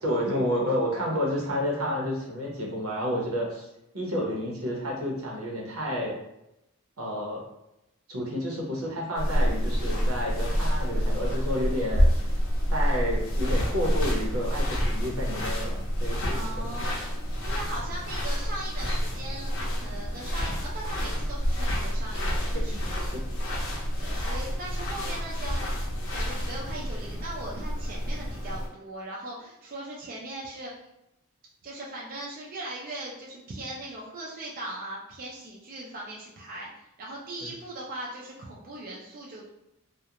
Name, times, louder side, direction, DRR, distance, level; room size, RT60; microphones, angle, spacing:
voice 1, 0.0-3.7 3.9-6.1 7.0-7.4 8.1-12.1 12.7-16.7 22.7-23.1 37.4-37.5, equal, 85° right, -3 dB, 0.8 m, -30 dB
sound 1, 9.2-28.7, equal, 65° left, 0.6 m, -28 dB
voice 2, 16.3-22.8 24.0-25.7 26.1-30.9 31.6-39.5, right 1 dB, 40° right, -4 dB, 0.4 m, -39 dB
2.3 x 2.1 x 2.8 m, 0.87 s
head